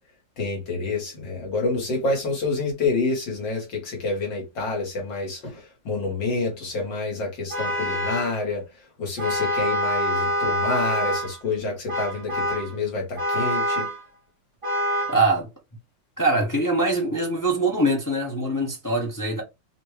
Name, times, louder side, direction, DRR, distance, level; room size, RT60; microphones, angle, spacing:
voice 1, 0.4-8.6 9.0-13.9, left 3 dB, 70° left, 2.4 m, -28 dB
Vehicle horn car horn honking, 7.5-8.4 9.2-11.4 11.9-12.7 13.2-14.0 14.6-15.2, equal, 25° right, 0.7 m, -26 dB
voice 2, 15.1-15.5 16.2-19.4, right 2 dB, 25° left, 0.4 m, -23 dB
4.2 x 2.6 x 3.3 m
omnidirectional pair, 2.1 m